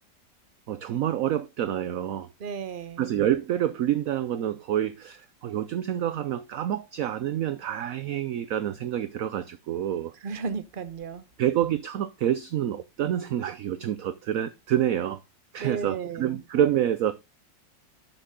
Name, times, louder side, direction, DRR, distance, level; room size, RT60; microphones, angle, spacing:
voice 1, 0.7-2.3 3.0-10.1 11.4-15.2 15.5-17.1, right 11 dB, 65° right, 0.9 m, -27 dB
voice 2, 2.4-3.1 10.2-11.2 15.6-16.4, right 5 dB, 35° right, 1.0 m, -34 dB
11.5 x 6.3 x 3.7 m
omnidirectional pair, 1.9 m